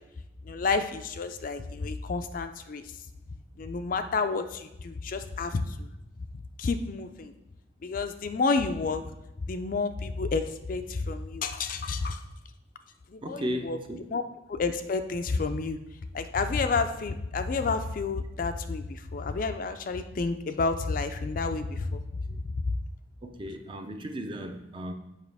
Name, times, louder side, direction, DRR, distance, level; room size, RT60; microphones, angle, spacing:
voice 1, 0.4-2.9 3.6-5.9 6.6-7.3 7.8-9.0 9.5-12.2 13.1-13.8 14.1-14.2 14.5-15.8 16.1-22.0 22.3-22.4, left 4 dB, 45° left, 8 dB, 0.4 m, -30 dB
voice 2, 13.2-14.1 23.2-24.9, equal, 25° right, 5 dB, 0.5 m, -35 dB
7.2 x 5.5 x 3.4 m, 0.90 s
head